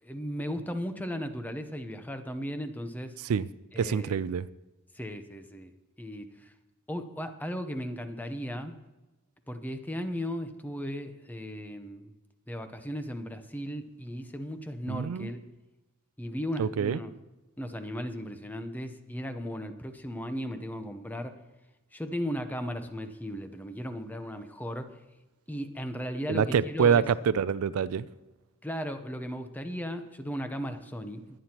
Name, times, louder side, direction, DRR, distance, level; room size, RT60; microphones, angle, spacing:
voice 1, 0.0-3.2 3.7-4.2 4.9-5.7 6.0-6.5 6.9-8.8 9.5-12.1 12.5-15.4 16.2-17.1 17.6-21.4 21.9-24.9 25.5-27.0 28.6-31.2, equal, 10° left, 0.8 m, -36 dB
voice 2, 3.8-4.5 14.9-15.3 16.6-17.0 26.3-28.1, right 7 dB, 80° right, 0.4 m, -26 dB
21.5 x 9.5 x 2.9 m
head